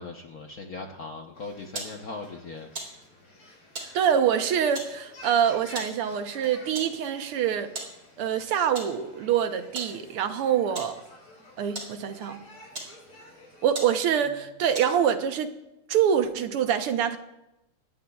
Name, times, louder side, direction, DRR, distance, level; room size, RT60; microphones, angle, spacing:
voice 1, 0.0-2.7, left 3 dB, 50° left, 1.3 m, -39 dB
sound 1, 1.3-13.7, left 1 dB, 85° left, 6.8 m, -51 dB
sound 2, 1.7-2.0 2.7-2.9 3.7-3.9 4.7-4.9 5.7-5.9 6.7-6.9 7.7-7.9 8.7-8.9 9.7-10.0 10.7-10.9 11.7-11.9 12.7-13.0 13.4-13.5 13.7-13.9 14.7-15.1, right 2 dB, 45° right, 4.4 m, -37 dB
voice 2, 3.9-7.7 8.2-11.0 11.6-12.4 13.6-15.5 15.9-17.2, right 8 dB, 85° right, 1.9 m, -25 dB
23.5 x 18.0 x 2.4 m
omnidirectional pair, 2.4 m